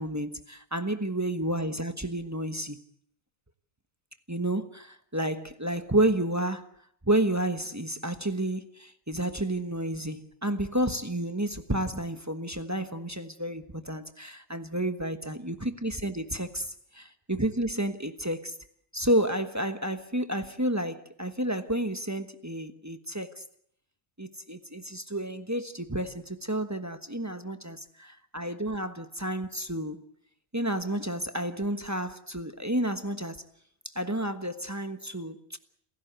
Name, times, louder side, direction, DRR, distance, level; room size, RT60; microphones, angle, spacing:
voice 1, 0.0-2.8 4.3-6.6 7.0-18.6 18.9-23.4 24.2-30.0 30.5-33.4 33.9-35.6, right 1 dB, 15° right, 1.2 m, -30 dB
28.5 x 16.0 x 8.0 m
omnidirectional pair, 1.1 m